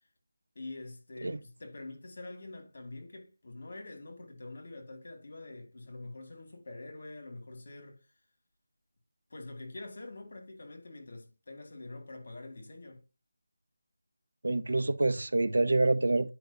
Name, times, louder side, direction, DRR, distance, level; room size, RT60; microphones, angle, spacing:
voice 1, 0.6-8.0 9.3-13.0, left 2 dB, 55° left, 2.1 m, -45 dB
voice 2, 14.4-16.3, right 2 dB, 80° right, 0.6 m, -27 dB
9.0 x 4.9 x 2.8 m
figure-of-eight pair, 170°, 0 cm